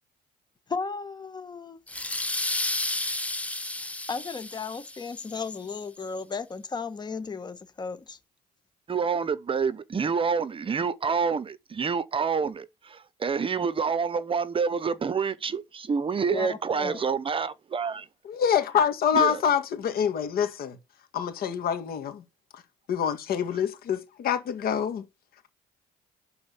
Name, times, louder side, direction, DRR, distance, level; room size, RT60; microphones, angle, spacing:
voice 1, 0.7-1.8 3.8-8.2 16.3-17.0, left 5 dB, 25° left, 1.4 m, -35 dB
sound 1, 1.9-5.3, left 2 dB, 10° left, 0.6 m, -31 dB
voice 2, 8.9-18.1 19.1-19.4, right 5 dB, 30° right, 0.9 m, -28 dB
voice 3, 18.3-20.8 21.1-22.2 22.9-25.0, left 8 dB, 60° left, 2.2 m, -26 dB
11.0 x 4.3 x 7.0 m
cardioid pair, 110°, 17 cm